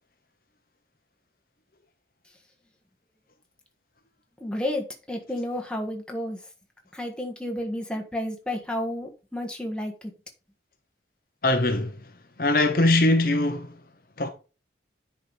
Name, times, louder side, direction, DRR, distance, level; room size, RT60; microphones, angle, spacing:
voice 1, 4.4-6.4 6.9-10.1, left 1 dB, 5° left, 1.5 m, -31 dB
voice 2, 11.4-12.0 12.4-13.7 14.2-14.3, left 2 dB, 50° left, 0.9 m, -21 dB
10.0 x 4.9 x 4.0 m
head